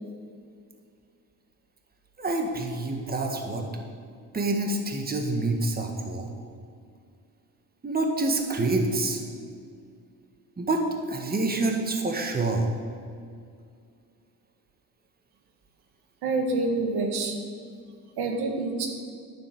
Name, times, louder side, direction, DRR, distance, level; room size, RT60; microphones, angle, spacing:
voice 1, 2.2-3.7 4.3-6.3 7.8-9.2 10.6-12.7, right 2 dB, 25° right, 2 dB, 1.7 m, -27 dB
voice 2, 16.2-17.4 18.2-18.9, right 3 dB, 80° right, 3 dB, 1.9 m, -27 dB
9.7 x 7.6 x 9.3 m, 2.3 s
cardioid pair, 110°, 38 cm